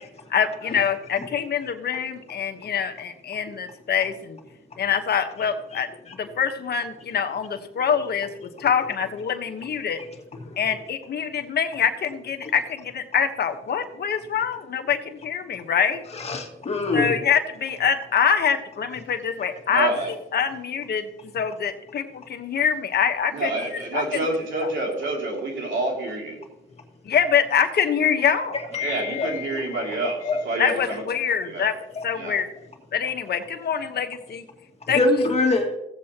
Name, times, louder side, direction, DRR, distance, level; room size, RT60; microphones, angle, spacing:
voice 1, 0.3-4.4 4.8-5.9 6.2-10.0 10.6-16.0 16.9-23.5 23.9-24.0 24.6-24.7 27.0-28.6 30.6-31.8 32.0-32.5 32.9-34.4 34.9-35.0, left 7 dB, 55° left, 7 dB, 1.2 m, -25 dB
voice 2, 5.7-6.2 8.6-8.7 10.3-10.6 12.4-12.5 16.1-17.2 28.5-30.4 32.0-32.1 34.8-35.8, left 3 dB, 30° left, 1 dB, 2.1 m, -26 dB
voice 3, 19.7-20.1 23.3-26.4 28.8-31.0 31.5-31.7 32.1-32.3, right 2 dB, 70° right, 1 dB, 2.9 m, -28 dB
16.0 x 7.6 x 2.9 m, 0.92 s
cardioid pair, 90°, 20 cm